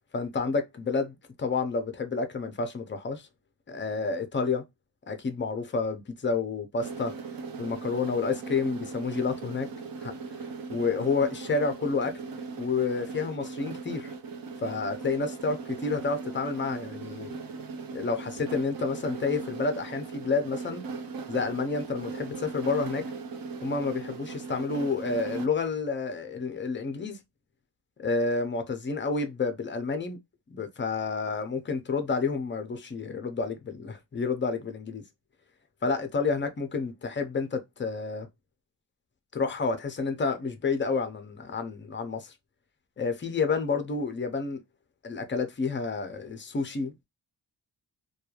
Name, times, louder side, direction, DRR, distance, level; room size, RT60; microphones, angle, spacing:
voice 1, 0.1-3.3 3.7-4.6 5.1-7.1 7.6-9.7 10.0-12.2 12.6-14.1 14.6-17.4 17.9-20.8 21.3-23.1 23.6-27.2 28.0-30.2 30.5-35.0 35.8-38.3 39.3-42.3 43.0-44.6 45.0-47.1, left 4 dB, 25° left, 0.4 m, -30 dB
sound 1, 6.8-25.5, right 4 dB, 50° right, 0.6 m, -38 dB
3.0 x 2.2 x 2.3 m
wide cardioid pair, 175°, 44 cm